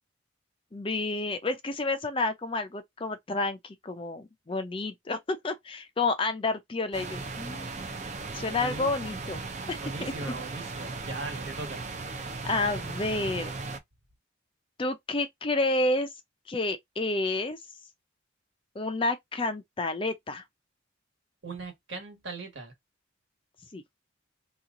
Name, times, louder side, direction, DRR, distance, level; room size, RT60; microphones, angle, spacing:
voice 1, 0.7-7.9 8.3-9.4 9.7-10.3 12.4-13.5 14.8-16.1 16.5-17.6 18.8-20.4 23.7-23.8, left 2 dB, 25° left, 0.4 m, -30 dB
sound 1, 6.9-13.8, right 3 dB, 35° right, 0.5 m, -37 dB
voice 2, 8.6-8.9 9.8-11.8 12.1-12.2 21.4-22.7, right 3 dB, 65° right, 1.3 m, -39 dB
2.9 x 2.4 x 3.6 m
head